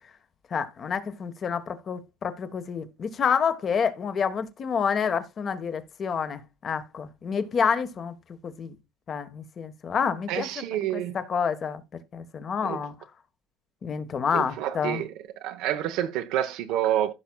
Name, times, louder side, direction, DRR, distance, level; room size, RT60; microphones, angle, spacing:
voice 1, 0.5-8.2 8.4-8.7 9.1-10.5 10.9-11.8 12.1-12.9 13.8-15.0, left 6 dB, 35° left, 1.2 m, -28 dB
voice 2, 10.3-11.1 12.6-12.8 14.3-15.1 15.4-17.1, right 12 dB, 70° right, 0.9 m, -28 dB
15.5 x 5.9 x 2.2 m
cardioid pair, 135°, 0 cm